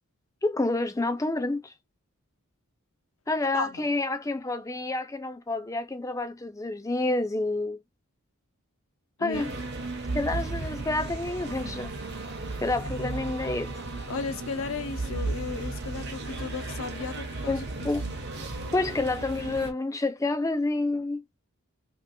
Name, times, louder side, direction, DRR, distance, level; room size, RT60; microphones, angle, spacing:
voice 1, 0.4-1.7 3.3-7.8 9.2-9.5 10.1-11.9 12.6-13.7 17.5-18.0 18.7-21.2, left 2 dB, 15° left, 0.4 m, -28 dB
voice 2, 3.5-3.9 9.2-9.4 13.0-13.2 14.1-17.9, left 4 dB, 65° left, 0.6 m, -35 dB
sound 1, 9.3-19.7, right 2 dB, 50° right, 0.8 m, -35 dB
3.0 x 2.8 x 2.6 m
head